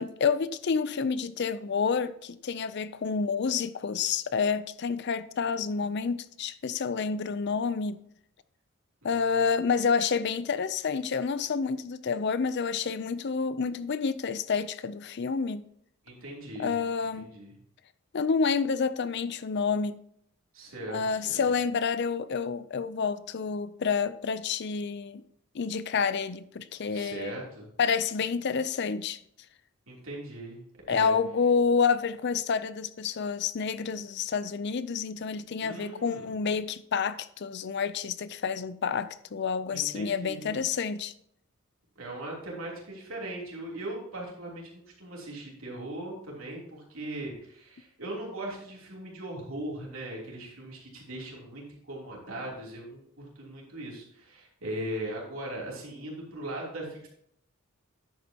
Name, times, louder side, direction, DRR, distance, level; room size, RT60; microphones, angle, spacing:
voice 1, 0.0-8.0 9.0-15.6 16.6-17.3 18.1-20.0 20.9-25.2 25.5-27.3 27.8-29.2 30.9-41.1, left 5 dB, 55° left, 0.5 m, -29 dB
voice 2, 9.0-9.6 16.0-16.7 17.2-17.5 20.5-21.4 26.9-27.7 29.9-30.6 30.9-31.2 35.6-36.3 39.7-40.6 41.9-57.1, right 1 dB, 75° right, 3.2 m, -39 dB
10.5 x 8.3 x 2.9 m
head